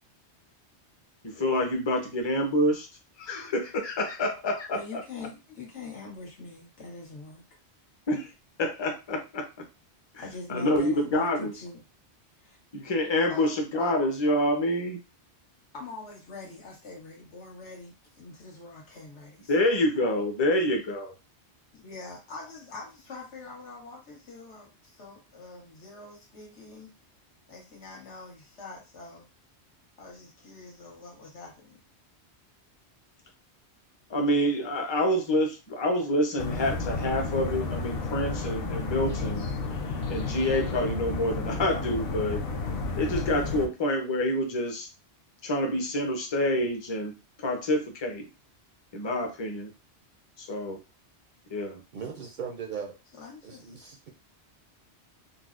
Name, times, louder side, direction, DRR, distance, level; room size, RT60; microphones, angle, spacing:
voice 1, 1.4-2.9 3.2-5.0 8.1-8.3 8.6-9.5 10.5-11.5 12.7-15.0 19.5-21.1 34.1-39.5 40.1-42.4 43.0-44.9 45.4-48.3 48.9-49.7 50.4-50.8 51.5-51.8, left 1 dB, 30° left, 3 dB, 0.5 m, -27 dB
voice 2, 4.7-7.4 10.2-11.8 12.4-12.6 13.2-13.9 15.7-19.8 21.7-26.9 27.5-29.3 30.0-31.8 53.2-53.8, left 3 dB, 85° left, -2 dB, 1.4 m, -44 dB
sound 1, 36.4-43.7, left 3 dB, 60° left, 0.8 m, -32 dB
voice 3, 51.9-53.0 53.4-54.1, right 6 dB, 60° right, 2 dB, 0.5 m, -38 dB
3.9 x 2.0 x 2.4 m, 0.28 s
omnidirectional pair, 1.2 m